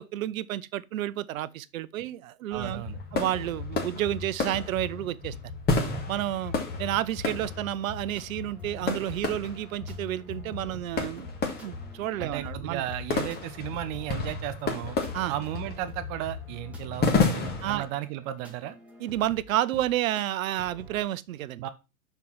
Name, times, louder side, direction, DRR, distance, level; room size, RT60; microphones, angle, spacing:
voice 1, 0.0-2.8 3.1-5.3 6.1-6.5 6.8-11.3 11.6-12.8 15.1-15.3 17.6-17.8 19.0-21.6, right 13 dB, 65° right, 0.7 m, -30 dB
sound 1, 2.5-17.9, left 4 dB, 20° left, 1.7 m, -32 dB
voice 2, 2.5-3.0 12.2-15.0 15.3-18.8 21.6-21.7, right 13 dB, 25° right, 0.4 m, -35 dB
sound 2, 7.3-21.0, right 2 dB, 5° right, 1.6 m, -50 dB
6.0 x 4.5 x 5.4 m
hypercardioid pair, 130°, 44 cm